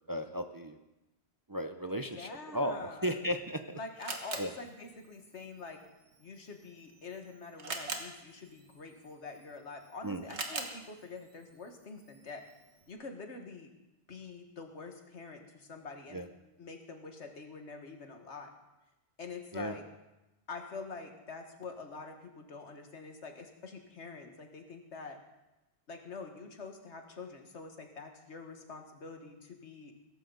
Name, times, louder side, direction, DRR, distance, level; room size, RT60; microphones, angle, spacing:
voice 1, 0.1-0.8 1.5-3.8 4.4-4.5 10.0-10.2 16.1-16.3 19.5-19.7, equal, 25° right, 7 dB, 0.5 m, -35 dB
voice 2, 1.9-3.2 3.7-5.8 6.2-12.4 12.9-13.7 14.1-16.2 16.6-18.5 19.2-19.8 20.5-25.2 25.9-30.0, left 4 dB, 90° left, 4 dB, 1.9 m, -46 dB
Camera, 3.1-12.9, right 3 dB, 85° right, 1.7 m, -46 dB
16.5 x 14.0 x 4.0 m, 0.99 s
omnidirectional pair, 1.1 m